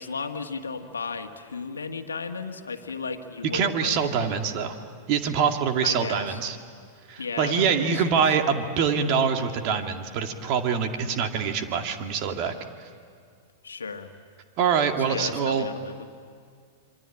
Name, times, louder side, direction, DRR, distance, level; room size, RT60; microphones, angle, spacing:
voice 1, 0.0-4.0 5.8-6.4 7.2-8.2 13.6-14.1 15.1-16.1, left 4 dB, 80° left, 6 dB, 1.6 m, -34 dB
voice 2, 3.5-4.8 5.1-6.6 7.1-12.5 14.6-15.7, right 6 dB, 45° right, 5 dB, 2.3 m, -25 dB
26.5 x 23.5 x 8.8 m, 2.2 s
figure-of-eight pair, 100°, 0 cm